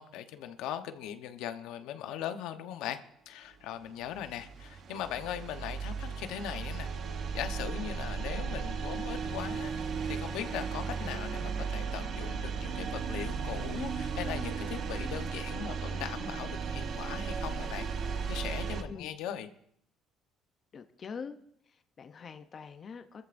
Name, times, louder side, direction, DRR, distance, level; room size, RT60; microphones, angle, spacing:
voice 1, 0.0-3.0 3.3-6.9 7.3-9.8 10.1-17.9 18.3-19.5, left 10 dB, 85° left, 8 dB, 0.9 m, -39 dB
sound 1, 3.9-18.8, right 5 dB, 45° right, 1.0 m, -35 dB
voice 2, 20.7-21.4 21.7-23.2, left 6 dB, 30° left, 8 dB, 0.7 m, -44 dB
24.0 x 13.5 x 2.6 m, 0.69 s
cardioid pair, 170°, 0 cm